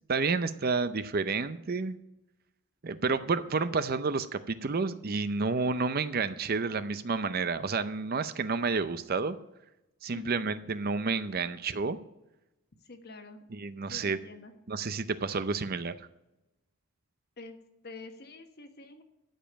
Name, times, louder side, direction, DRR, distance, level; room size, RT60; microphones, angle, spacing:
voice 1, 0.1-2.0 2.8-9.4 10.0-12.0 13.5-14.2 14.7-15.9, right 4 dB, 40° right, 12 dB, 0.5 m, -30 dB
voice 2, 10.1-10.4 12.8-13.5 13.9-14.5 17.4-17.6 17.8-19.0, left 2 dB, 45° left, 7 dB, 1.2 m, -47 dB
13.5 x 5.3 x 8.9 m, 0.94 s
head